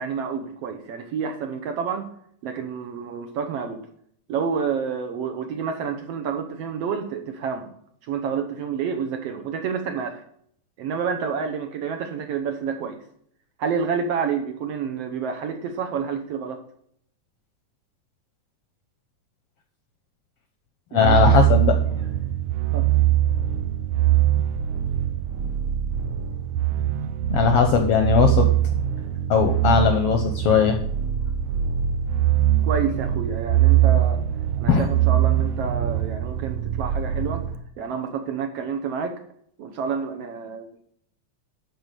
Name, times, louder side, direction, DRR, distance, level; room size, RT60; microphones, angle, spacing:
voice 1, 0.0-2.1 2.4-3.8 4.3-7.7 8.0-10.2 10.8-13.0 13.6-16.6 20.9-21.5 22.7-22.9 32.6-34.2 34.6-37.4 37.8-39.2 39.6-40.8, right 6 dB, 70° right, 5 dB, 1.7 m, -29 dB
voice 2, 20.9-21.7 27.3-28.5 29.3-30.8 34.7-34.9, left 7 dB, 70° left, 6 dB, 1.5 m, -19 dB
sound 1, 21.0-37.5, right 12 dB, 90° right, 1.4 m, -22 dB
11.5 x 4.0 x 6.7 m, 0.66 s
omnidirectional pair, 3.5 m